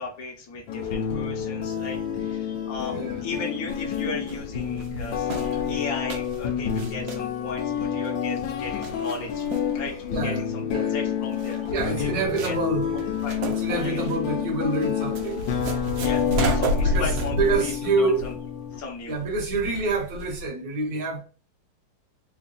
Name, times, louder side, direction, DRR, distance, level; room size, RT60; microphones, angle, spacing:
voice 1, 0.0-9.5 9.7-9.9 10.2-12.5 13.2-13.4 13.8-14.0 15.9-18.3 18.8-19.2, left 3 dB, 55° left, 1.1 m, -36 dB
sound 1, 0.7-18.8, left 8 dB, 80° left, 1.4 m, -29 dB
sound 2, 3.7-20.5, equal, 80° right, 1.5 m, -32 dB
voice 2, 10.1-10.9 11.6-13.2 13.4-15.4 16.8-18.3 19.1-21.2, right 3 dB, 55° right, 1.5 m, -27 dB
3.8 x 2.3 x 3.7 m
omnidirectional pair, 2.0 m